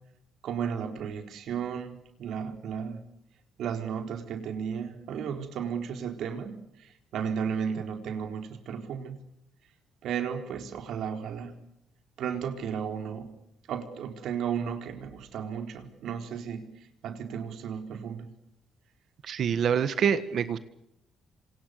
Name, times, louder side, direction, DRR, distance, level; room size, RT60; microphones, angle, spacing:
voice 1, 0.4-3.0 3.6-9.2 10.0-11.6 12.2-13.3 13.7-16.7 17.0-18.3, right 7 dB, 65° right, 6 dB, 4.1 m, -34 dB
voice 2, 19.2-20.6, right 7 dB, 50° right, 12 dB, 1.6 m, -26 dB
28.0 x 26.5 x 6.8 m, 0.79 s
cardioid pair, 155°, 0 cm